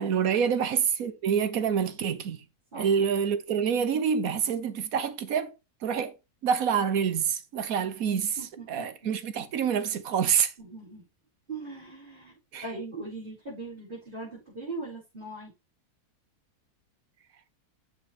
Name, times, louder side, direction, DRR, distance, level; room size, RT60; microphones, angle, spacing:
voice 1, 0.0-2.4 2.7-5.5 5.8-6.1 6.4-8.4 8.7-10.5 12.5-12.6, right 7 dB, 65° right, 1.3 m, -27 dB
voice 2, 8.4-9.1 10.6-11.0 11.5-15.5, right 3 dB, 30° right, 6.1 m, -40 dB
7.8 x 7.1 x 3.4 m
omnidirectional pair, 1.7 m